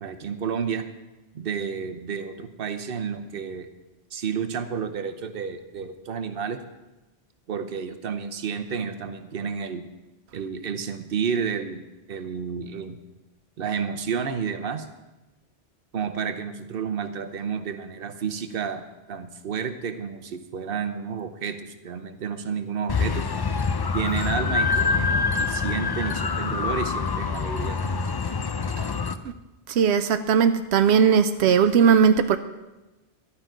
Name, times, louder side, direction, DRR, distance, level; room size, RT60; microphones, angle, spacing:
voice 1, 0.0-0.8 1.3-3.7 4.1-6.6 7.5-9.8 10.3-11.8 12.1-13.0 13.6-14.9 15.9-23.3 23.9-28.2, right 6 dB, 65° right, 8 dB, 1.0 m, -31 dB
sound 1, 22.9-29.1, left 5 dB, 40° left, 0.3 m, -25 dB
voice 2, 29.8-32.4, right 7 dB, 90° right, 10 dB, 0.8 m, -18 dB
12.5 x 5.7 x 9.0 m, 1.1 s
omnidirectional pair, 1.1 m